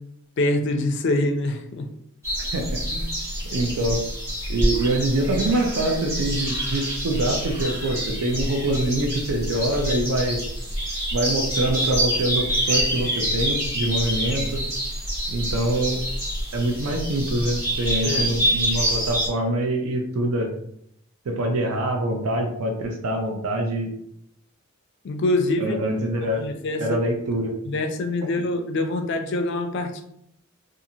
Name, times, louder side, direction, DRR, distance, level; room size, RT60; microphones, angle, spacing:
voice 1, 0.4-1.9 18.0-18.4 25.0-25.8 26.4-26.8 27.7-30.0, left 2 dB, 55° left, 6 dB, 0.4 m, -25 dB
sound 1, 2.2-19.3, equal, 15° right, 1.0 m, -26 dB
voice 2, 2.5-3.1 3.5-4.0 4.5-10.4 11.1-14.6 15.3-16.0 16.5-20.5 21.3-23.9 25.6-26.5 26.8-27.5, right 1 dB, 80° right, 2 dB, 0.5 m, -25 dB
2.7 x 2.4 x 2.7 m, 0.73 s
head